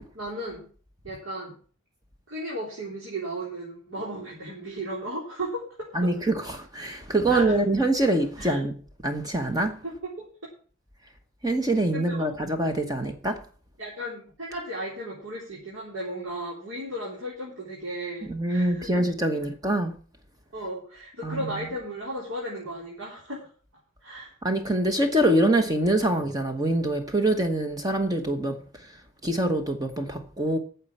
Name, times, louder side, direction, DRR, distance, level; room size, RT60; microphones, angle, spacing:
voice 1, 0.1-0.7 1.0-1.6 2.3-5.9 7.3-7.6 8.4-8.6 9.8-10.3 11.9-12.3 13.8-18.9 20.5-23.5 24.0-24.3, right 1 dB, 85° right, 3.6 m, -35 dB
voice 2, 5.9-8.7 9.0-9.8 11.4-13.4 18.3-20.0 21.2-21.6 24.4-29.0 29.2-30.6, right 1 dB, 20° right, 1.1 m, -25 dB
9.6 x 6.9 x 8.6 m
head